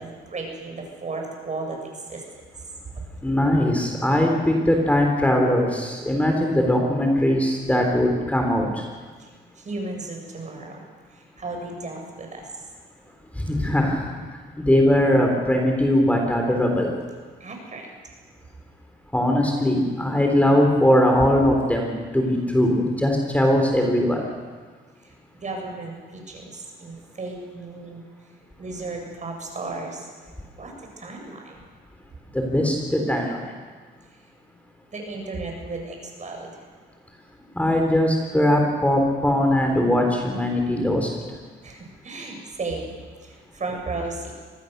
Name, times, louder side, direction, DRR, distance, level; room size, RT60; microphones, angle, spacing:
voice 1, 0.0-2.2 3.0-3.1 9.6-10.8 11.4-12.5 17.4-17.9 25.4-28.0 28.6-30.0 30.6-31.6 34.9-36.5 41.6-42.9 43.2-44.3, right 3 dB, 35° right, 2 dB, 7.2 m, -34 dB
voice 2, 3.2-8.6 13.4-14.2 14.6-16.9 19.1-24.2 32.3-33.5 37.6-41.1, left 1 dB, 5° left, 2 dB, 3.9 m, -20 dB
25.0 x 19.0 x 6.9 m, 1.5 s
cardioid pair, 90°, 20 cm